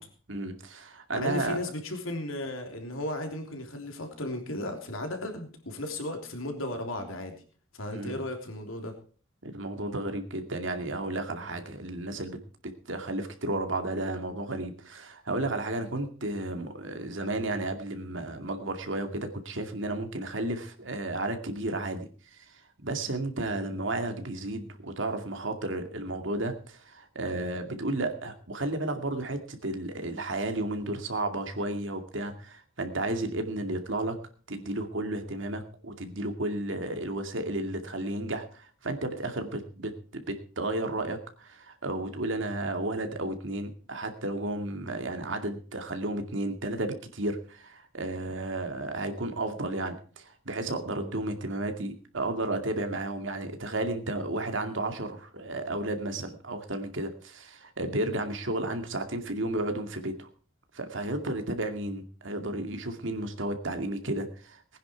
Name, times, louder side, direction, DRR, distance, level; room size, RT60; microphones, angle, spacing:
voice 1, 0.3-1.6 7.9-8.2 9.4-12.4 12.6-34.2 34.5-60.3 60.7-64.8, right 2 dB, 65° right, 6 dB, 2.3 m, -33 dB
voice 2, 1.1-7.4 7.7-8.9, left 1 dB, 90° left, 4 dB, 3.3 m, -35 dB
19.5 x 10.0 x 4.6 m, 0.41 s
head